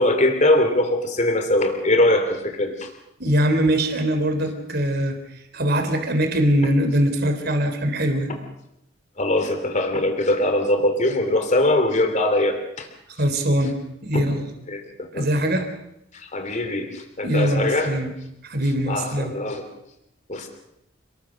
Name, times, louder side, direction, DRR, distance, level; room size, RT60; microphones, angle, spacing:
voice 1, 0.0-2.9 9.2-12.9 14.1-14.3 14.7-15.2 16.3-16.9 17.2-17.9 18.9-19.6 20.3-20.5, left 1 dB, 40° left, 6 dB, 2.9 m, -21 dB
voice 2, 3.2-5.2 5.5-8.3 13.2-14.5 15.1-15.7 17.2-18.1 18.4-19.4, equal, 55° right, 6 dB, 3.8 m, -22 dB
29.0 x 20.5 x 6.3 m, 0.81 s
head